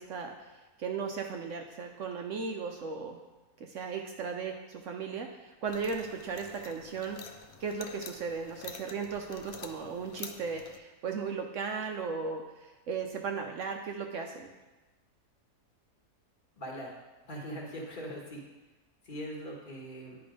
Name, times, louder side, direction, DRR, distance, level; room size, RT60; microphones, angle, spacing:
voice 1, 0.0-3.2 3.6-7.3 7.6-14.5, right 5 dB, 65° right, 3 dB, 0.8 m, -36 dB
sound 1, 5.7-10.8, left 6 dB, 85° left, 0.4 m, -48 dB
voice 2, 16.6-16.9 17.3-18.4 19.0-20.2, equal, 35° left, -3 dB, 1.5 m, -41 dB
10.0 x 3.4 x 5.1 m, 1.2 s
omnidirectional pair, 1.6 m